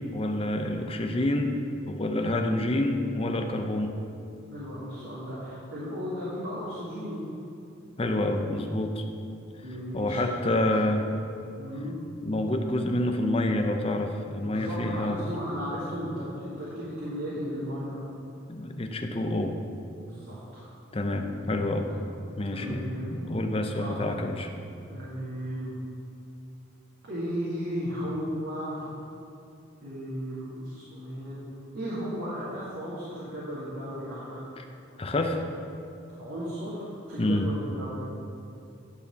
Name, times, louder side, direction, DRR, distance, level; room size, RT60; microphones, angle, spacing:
voice 1, 0.0-1.5 1.9-3.9 8.0-9.0 9.9-11.1 12.2-15.3 18.5-19.5 20.9-21.9 22.4-24.5 34.6-34.7 35.0-35.4 37.2-37.5, left 1 dB, 30° left, 4 dB, 0.6 m, -28 dB
voice 2, 4.5-7.2 9.6-10.3 10.6-10.7 11.6-12.0 14.4-18.0 20.0-20.7 21.9-22.0 22.5-23.1 23.8-24.0 24.9-25.7 27.1-28.8 29.8-31.4 31.7-34.4 36.2-38.0, equal, 85° right, -10 dB, 2.2 m, -35 dB
11.0 x 4.3 x 7.0 m, 2.6 s
head